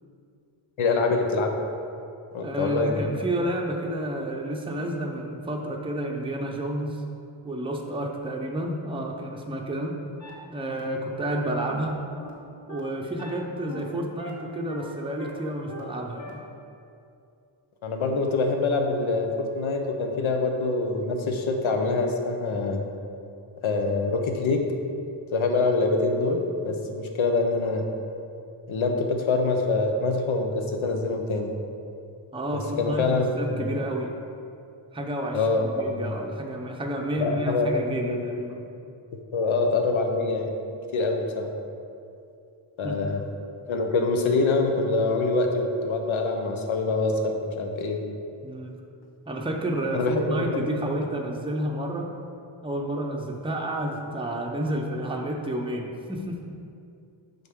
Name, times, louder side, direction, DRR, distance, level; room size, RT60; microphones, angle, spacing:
voice 1, 0.8-1.6 2.3-3.1 17.8-22.9 23.6-24.6 25.3-27.9 28.7-31.5 32.5-33.7 35.3-36.2 37.2-38.2 39.3-40.5 40.9-41.5 42.8-43.2 43.7-48.0 49.9-50.6, left 3 dB, 75° left, 3 dB, 0.9 m, -25 dB
voice 2, 2.4-7.0 7.4-10.0 10.5-12.0 12.7-16.4 32.3-34.1 34.9-38.7 40.6-40.8 42.8-42.9 48.4-48.7 49.3-52.1 52.6-56.4, right 1 dB, 10° right, 1 dB, 0.6 m, -30 dB
sound 1, 10.2-10.3 10.7-10.8 11.2-11.3 11.7-11.8 12.2-12.3 12.7-12.8 13.2-13.3 13.7-13.8 14.2-14.3 14.7-14.8 15.2-15.3 15.7-15.8 16.2-16.3, left 2 dB, 35° left, 1.3 m, -40 dB
7.8 x 5.5 x 3.7 m, 2.5 s
wide cardioid pair, 110°, 48 cm